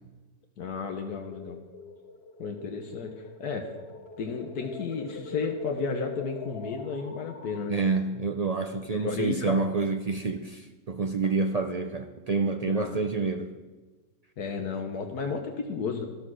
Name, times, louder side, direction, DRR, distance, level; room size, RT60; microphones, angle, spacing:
voice 1, 0.6-1.6 2.4-3.7 4.2-7.7 8.9-9.7 12.6-13.0 14.4-16.0, left 5 dB, 85° left, 4 dB, 1.7 m, -33 dB
sound 1, 1.3-7.7, left 2 dB, 45° left, 1.0 m, -43 dB
voice 2, 7.7-13.5, right 4 dB, 75° right, 7 dB, 0.3 m, -28 dB
12.5 x 12.5 x 6.3 m, 1.3 s
omnidirectional pair, 1.6 m